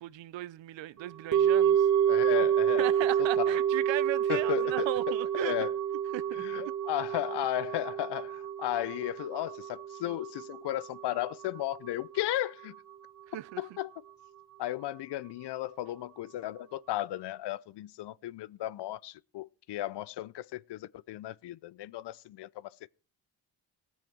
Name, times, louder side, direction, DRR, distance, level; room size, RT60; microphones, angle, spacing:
voice 1, 0.0-1.9 2.8-5.5 6.1-6.4 13.3-13.6, right 15 dB, 70° right, 0.7 m, -36 dB
sound 1, 1.3-11.6 11.9-12.0, right 9 dB, 40° right, 1.7 m, -28 dB
voice 2, 2.1-2.9 3.4-3.6 4.3-4.9 5.4-5.7 6.4-12.8 13.6-13.9 14.6-22.8, left 14 dB, 60° left, 0.6 m, -35 dB
18.0 x 7.5 x 4.5 m
supercardioid pair, 60°, 47 cm